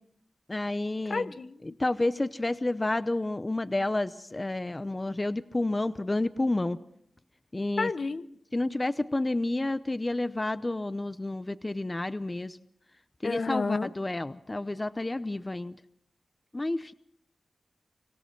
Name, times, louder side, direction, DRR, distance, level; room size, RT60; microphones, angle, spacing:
voice 1, 0.5-1.4 1.6-6.8 7.5-7.9 8.5-12.6 13.2-15.7 16.5-16.9, left 2 dB, 25° left, 13 dB, 0.7 m, -30 dB
voice 2, 1.1-1.5 7.8-8.2 13.2-13.9, left 4 dB, 65° left, 11 dB, 1.0 m, -30 dB
25.5 x 17.0 x 6.1 m, 0.72 s
wide cardioid pair, 70°, 0 cm